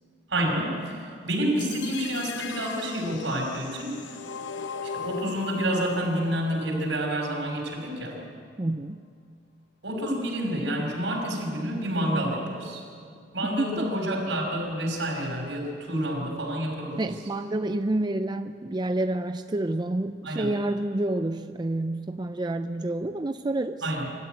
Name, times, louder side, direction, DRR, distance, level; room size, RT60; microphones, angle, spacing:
voice 1, 0.3-4.2 4.8-8.2 9.8-12.8 13.3-17.0 20.2-20.5 23.8-24.1, right 1 dB, 70° right, 0 dB, 5.7 m, -29 dB
sound 1, 1.6-7.6, left 5 dB, 80° left, 0.8 m, -38 dB
voice 2, 8.6-9.0 13.4-13.9 17.0-23.9, right 2 dB, 25° right, 9 dB, 0.5 m, -29 dB
25.0 x 13.5 x 9.4 m, 2.3 s
head